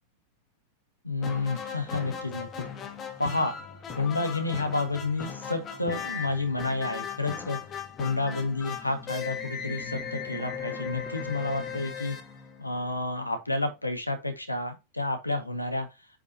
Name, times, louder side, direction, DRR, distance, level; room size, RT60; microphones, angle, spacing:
voice 1, 1.0-2.5 3.2-3.5 4.0-7.6 8.0-12.2 12.6-15.9, left 2 dB, 85° left, 1.9 m, -30 dB
sound 1, 1.2-13.1, left 7 dB, 25° left, 1.9 m, -38 dB
8.9 x 5.4 x 2.8 m
figure-of-eight pair, 90°, 0 cm